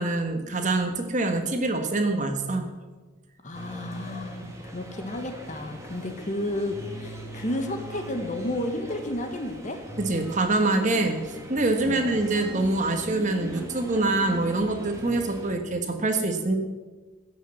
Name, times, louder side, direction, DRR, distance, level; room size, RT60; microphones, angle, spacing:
voice 1, 0.0-2.7 10.0-16.6, right 2 dB, 35° right, 5 dB, 1.3 m, -25 dB
voice 2, 3.4-9.8 11.8-12.2, left 1 dB, 35° left, 6 dB, 1.3 m, -32 dB
sound 1, 3.5-15.5, equal, 15° right, 1.5 m, -40 dB
15.5 x 6.4 x 7.7 m, 1.3 s
head